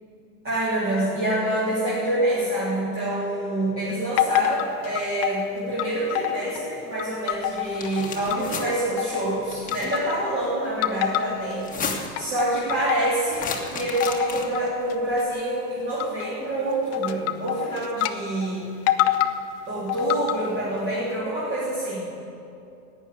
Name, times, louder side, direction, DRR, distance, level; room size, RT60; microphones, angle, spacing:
voice 1, 0.4-18.6 19.7-22.1, right 1 dB, 25° right, -8 dB, 3.1 m, -26 dB
sound 1, 4.2-5.5 5.8-6.7 7.0-8.6 9.0-9.4 9.7-10.4 10.8-11.6 11.9-13.6 14.0-14.6 14.9-15.2 16.0-16.3 16.9-18.1 18.4-18.5 18.9-19.4 19.9-20.5, left 13 dB, 35° left, 0.6 m, -26 dB
sound 2, 7.7-8.7 9.5-10.0 11.5-12.2 13.3-14.7, left 5 dB, 15° left, 1.6 m, -33 dB
11.5 x 9.4 x 8.7 m, 2.7 s
supercardioid pair, 125°, 48 cm